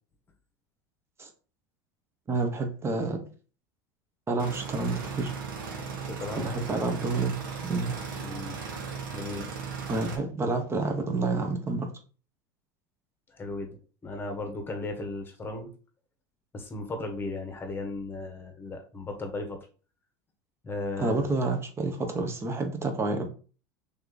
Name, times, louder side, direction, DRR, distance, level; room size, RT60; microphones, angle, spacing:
voice 1, 2.3-3.3 4.3-5.3 6.4-8.0 9.9-12.0 21.0-23.3, right 3 dB, 25° right, 1.0 m, -29 dB
sound 1, 4.4-10.2, right 5 dB, 85° right, 1.0 m, -37 dB
voice 2, 5.8-6.5 8.2-8.6 9.1-9.5 13.3-15.7 16.5-19.6 20.6-21.3, left 2 dB, 20° left, 1.1 m, -36 dB
3.6 x 3.1 x 3.9 m
supercardioid pair, 105°, 11 cm